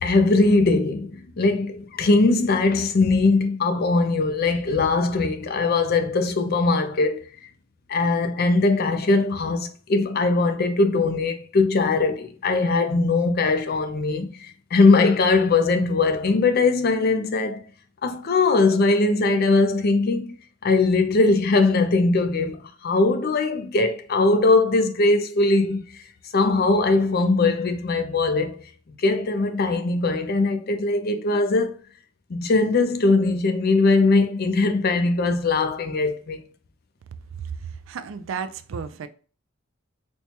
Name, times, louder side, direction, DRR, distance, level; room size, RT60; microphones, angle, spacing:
voice 1, 0.0-7.2 7.9-17.6 18.0-20.3 20.6-26.0 26.3-28.6 29.0-31.7 32.3-36.4, left 3 dB, 50° left, 0.5 m, -20 dB
voice 2, 37.9-39.1, right 6 dB, 75° right, 0.4 m, -33 dB
4.3 x 2.2 x 2.8 m
head